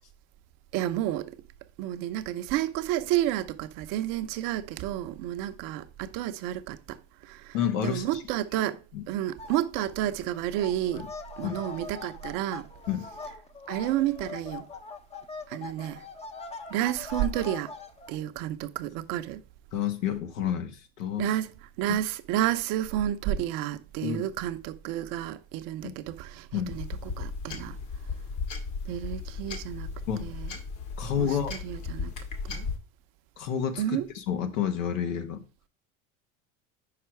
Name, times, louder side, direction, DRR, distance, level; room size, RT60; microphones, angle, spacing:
voice 1, 0.7-1.4 1.8-7.0 7.2-7.6 7.8-11.1 11.4-12.7 13.7-14.7 15.5-16.0 16.7-17.7 18.1-19.4 21.2-21.5 21.8-26.9 27.2-27.8 28.9-29.9 30.2-30.5 31.2-32.1 32.4-32.7 33.8-34.1, right 13 dB, 60° right, 0.8 m, -30 dB
voice 2, 7.5-8.2 8.9-9.0 10.9-11.1 11.4-11.6 12.9-13.0 19.7-21.3 21.9-22.0 24.0-24.3 25.8-25.9 26.5-26.8 30.1-30.3 31.0-31.5 33.4-35.4, left 8 dB, 80° left, 1.2 m, -30 dB
sound 1, 9.4-9.9 10.2-18.2, left 4 dB, 15° left, 0.7 m, -42 dB
sound 2, 26.7-32.8, left 4 dB, 50° left, 1.6 m, -36 dB
5.8 x 4.8 x 4.5 m
hypercardioid pair, 95°, 39 cm